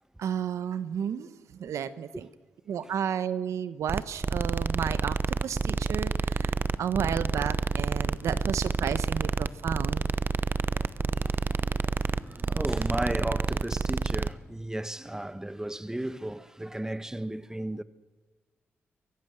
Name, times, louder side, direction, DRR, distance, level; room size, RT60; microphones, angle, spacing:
voice 1, 0.2-2.3 2.7-10.0, right 8 dB, 80° right, 1.0 m, -32 dB
sound 1, 3.9-14.3, right 4 dB, 45° right, 0.8 m, -29 dB
voice 2, 10.6-17.8, right 1 dB, 10° right, 1.2 m, -35 dB
23.0 x 15.0 x 7.9 m
supercardioid pair, 50°, 5 cm